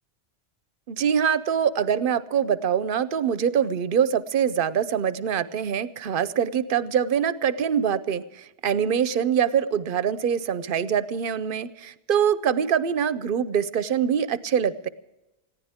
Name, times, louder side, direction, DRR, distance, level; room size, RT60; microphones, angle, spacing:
voice 1, 0.9-14.9, right 8 dB, 60° right, 15 dB, 0.8 m, -24 dB
21.0 x 15.0 x 3.6 m, 0.97 s
omnidirectional pair, 1.1 m